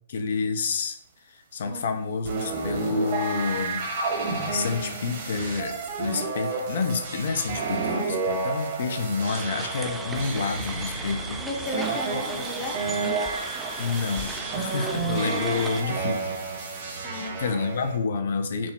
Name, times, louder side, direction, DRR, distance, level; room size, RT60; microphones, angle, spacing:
voice 1, 0.1-1.0 1.3-3.9 4.5-11.5 13.8-16.2 17.4-18.7, left 4 dB, 60° left, 8 dB, 0.6 m, -29 dB
voice 2, 1.7-2.0 11.4-12.8 17.0-17.6, left 1 dB, 25° left, 0 dB, 0.8 m, -34 dB
sound 1, 2.2-18.0, right 4 dB, 45° right, 1.2 m, -31 dB
sound 2, 9.3-15.8, right 3 dB, 10° right, 0.4 m, -37 dB
5.0 x 2.2 x 3.5 m, 0.66 s
hypercardioid pair, 130°, 0 cm